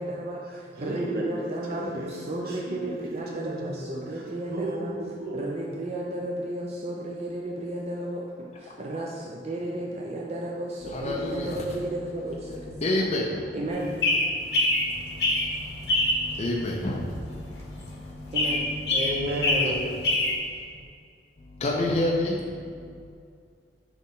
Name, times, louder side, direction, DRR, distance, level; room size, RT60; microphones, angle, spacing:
voice 1, 0.0-4.9 5.3-13.1 13.5-14.1 18.3-18.6, right 1 dB, 35° right, -2 dB, 0.6 m, -33 dB
voice 2, 0.7-5.5 18.9-20.0, equal, 60° right, -3 dB, 1.1 m, -34 dB
voice 3, 10.9-11.6 12.8-13.5 14.5-18.3 21.4-23.0, left 1 dB, 40° left, -1 dB, 0.5 m, -30 dB
sound 1, 13.7-20.3, left 2 dB, 70° left, 1.2 m, -25 dB
6.1 x 5.3 x 3.7 m, 2.3 s
head